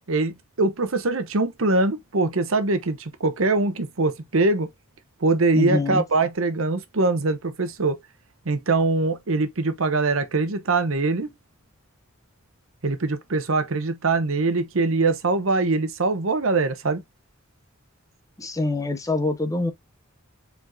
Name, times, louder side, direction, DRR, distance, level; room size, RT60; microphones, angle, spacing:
voice 1, 0.1-4.7 5.2-8.0 8.4-11.3 12.8-17.0, right 3 dB, 70° right, 0.8 m, -23 dB
voice 2, 5.5-6.0 18.4-19.7, left 2 dB, 15° left, 0.7 m, -25 dB
4.6 x 4.3 x 2.6 m
head